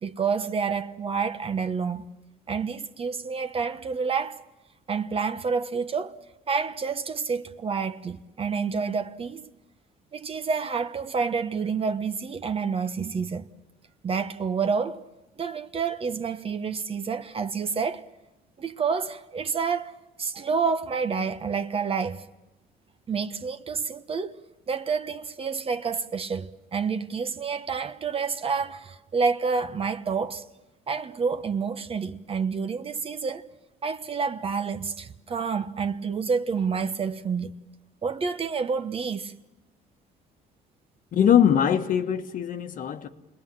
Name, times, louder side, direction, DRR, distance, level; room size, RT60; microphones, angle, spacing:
voice 1, 0.0-2.0 2.5-4.4 4.9-6.2 6.5-9.5 10.1-13.5 14.0-15.0 15.4-18.0 18.6-22.2 23.1-24.4 24.7-30.4 30.9-33.5 33.8-37.5 38.0-39.3, right 5 dB, 35° right, 1.1 m, -28 dB
voice 2, 41.1-43.1, left 9 dB, 50° left, 1.3 m, -22 dB
29.5 x 20.5 x 7.6 m
cardioid pair, 110°, 17 cm